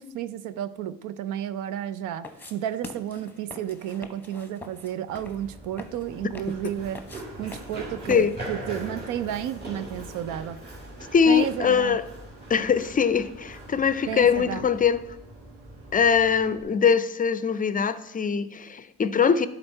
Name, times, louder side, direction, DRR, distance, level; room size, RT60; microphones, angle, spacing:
voice 1, 0.0-7.0 7.4-10.6 11.3-12.0 14.1-14.7, right 10 dB, 90° right, 0.5 m, -32 dB
sound 1, 2.2-8.6, left 2 dB, 5° left, 0.9 m, -44 dB
Run, 5.1-16.6, right 1 dB, 35° right, 2.9 m, -41 dB
voice 2, 11.1-12.0 12.5-15.0 15.9-19.5, left 6 dB, 30° left, 0.4 m, -22 dB
10.0 x 3.9 x 4.4 m
cardioid pair, 90°, 30 cm